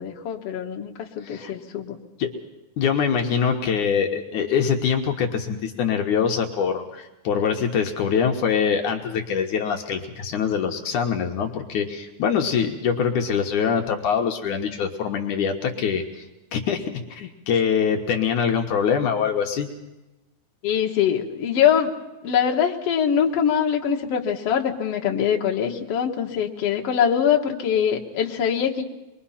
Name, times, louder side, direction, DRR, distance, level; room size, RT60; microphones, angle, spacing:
voice 1, 0.0-2.0 20.6-21.9 22.2-28.8, left 8 dB, 55° left, 1 dB, 2.4 m, -23 dB
voice 2, 2.8-16.2 16.5-19.7, left 7 dB, 75° left, 3 dB, 2.7 m, -24 dB
26.0 x 22.0 x 5.8 m, 1.0 s
omnidirectional pair, 3.7 m